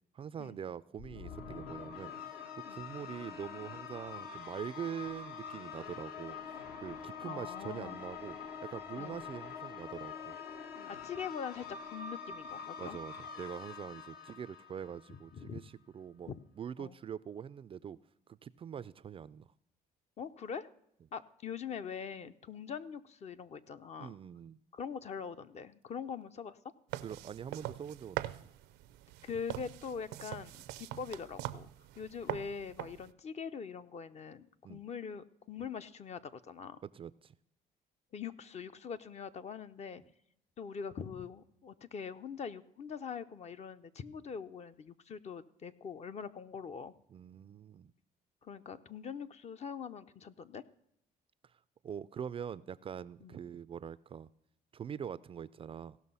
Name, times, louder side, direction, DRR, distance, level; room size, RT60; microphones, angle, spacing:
voice 1, 0.1-2.1 2.5-6.4 6.8-8.4 8.6-10.4 12.8-18.0 18.3-19.5 24.0-24.6 27.0-28.3 34.6-34.8 36.8-37.3 47.1-47.9 51.4-51.5 51.8-54.3 54.7-56.0, right 8 dB, 35° right, 17 dB, 0.3 m, -44 dB
sound 1, 1.0-15.4, left 6 dB, 70° left, 1.3 m, -45 dB
voice 2, 7.2-8.0 8.9-9.2 10.9-13.0 15.1-15.6 16.2-16.4 16.8-16.9 20.2-20.7 21.1-24.2 24.7-26.6 29.2-31.7 32.0-36.8 38.1-40.0 40.6-46.9 48.4-50.6 53.2-53.4, left 6 dB, 40° left, 11 dB, 0.6 m, -43 dB
sound 2, 26.9-33.1, right 15 dB, 90° right, 0.5 m, -43 dB
16.5 x 6.1 x 5.5 m, 0.75 s
cardioid pair, 110°, 17 cm